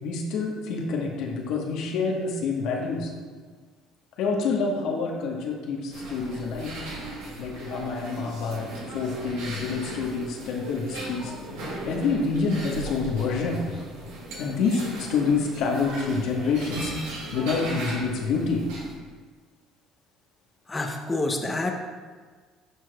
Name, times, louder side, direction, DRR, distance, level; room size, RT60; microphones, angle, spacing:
voice 1, 0.0-3.1 4.2-6.7 7.4-8.7 8.9-11.3 11.9-13.6 14.4-16.9 17.3-18.7, left 4 dB, 70° left, 0 dB, 1.1 m, -27 dB
sound 1, 5.9-18.9, right 1 dB, 85° right, 1.9 m, -38 dB
voice 2, 20.7-21.7, left 2 dB, 20° left, 2 dB, 0.7 m, -27 dB
12.0 x 4.6 x 2.3 m, 1.5 s
supercardioid pair, 80°, 0 cm